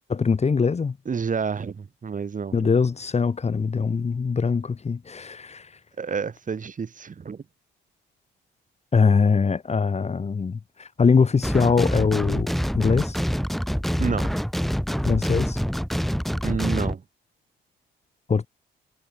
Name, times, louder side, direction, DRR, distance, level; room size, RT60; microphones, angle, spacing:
voice 1, 0.0-1.0 2.5-5.7 8.9-13.2 15.1-15.6 18.3-18.5, left 5 dB, 35° left, 2.0 m, -22 dB
voice 2, 1.1-2.7 6.0-7.4 14.0-14.4 16.4-17.0, right 6 dB, 40° right, 7.7 m, -29 dB
sound 1, 11.4-16.9, equal, ahead, 2.8 m, -26 dB
cardioid pair, 90°, 20 cm